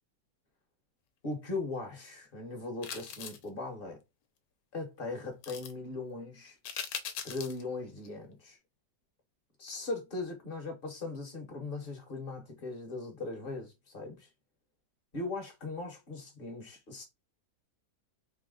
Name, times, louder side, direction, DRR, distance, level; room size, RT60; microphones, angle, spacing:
voice 1, 1.2-4.0 4.7-6.6 7.2-8.6 9.6-14.3 15.1-17.0, left 3 dB, 35° left, 1.1 m, -39 dB
sound 1, 2.8-3.5 5.4-5.7 6.6-7.6 8.0-8.1, left 8 dB, 80° left, 1.2 m, -40 dB
4.1 x 2.0 x 3.7 m
omnidirectional pair, 1.9 m